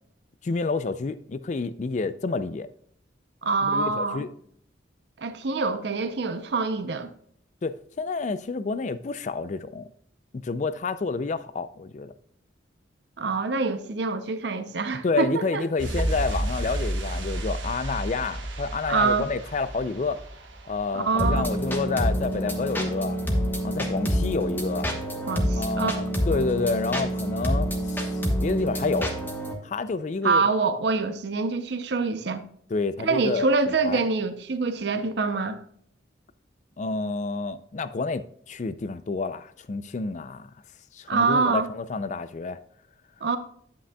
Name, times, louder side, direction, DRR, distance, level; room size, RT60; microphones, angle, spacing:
voice 1, 0.4-2.7 3.6-4.3 7.6-9.8 10.3-12.1 15.0-20.2 20.7-23.2 23.6-24.9 25.6-29.1 29.6-30.5 32.7-34.0 36.8-40.5 40.9-42.6, left 4 dB, 40° left, 0.4 m, -29 dB
voice 2, 3.4-4.2 5.2-7.1 13.2-15.7 18.9-19.3 20.9-21.6 25.3-26.0 30.2-32.4 33.0-35.6 41.1-41.7 43.2-43.4, right 4 dB, 60° right, 0.6 m, -25 dB
sound 1, 15.8-22.3 22.5-22.7, right 1 dB, 85° right, 1.3 m, -32 dB
sound 2, 21.2-29.5, equal, 10° left, 1.1 m, -27 dB
10.0 x 8.4 x 2.3 m
head